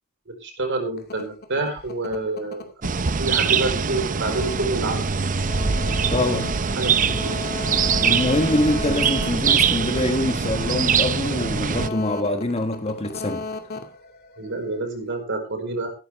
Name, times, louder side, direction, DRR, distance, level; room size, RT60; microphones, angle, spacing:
voice 1, 0.3-2.7 3.2-5.0 6.8-7.3 14.4-15.9, right 2 dB, 55° right, 4.8 m, -28 dB
sound 1, 1.0-14.8, left 3 dB, 50° left, 2.3 m, -35 dB
sound 2, 2.8-11.9, right 6 dB, 40° right, 0.7 m, -23 dB
voice 2, 6.1-6.6 8.0-13.4, left 1 dB, 30° left, 1.4 m, -24 dB
14.5 x 13.0 x 3.6 m
head